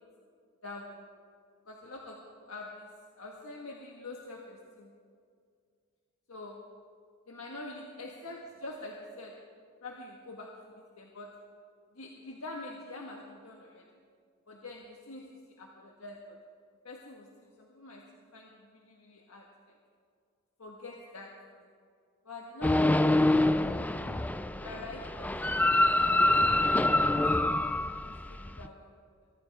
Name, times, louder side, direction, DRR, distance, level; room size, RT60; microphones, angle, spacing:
voice 1, 0.6-1.0 1.7-2.9 3.2-4.9 6.3-6.6 7.3-9.3 9.8-11.3 11.9-13.8 14.5-16.4 16.8-18.0 18.3-19.8 20.6-21.3 22.2-23.9 24.6-26.1 26.3-26.7 27.3-27.6 28.0-28.8, left 2 dB, 80° left, -1 dB, 1.6 m, -45 dB
sound 1, 22.6-28.7, left 1 dB, 5° left, 0.4 m, -26 dB
24.0 x 14.5 x 3.5 m, 2.1 s
head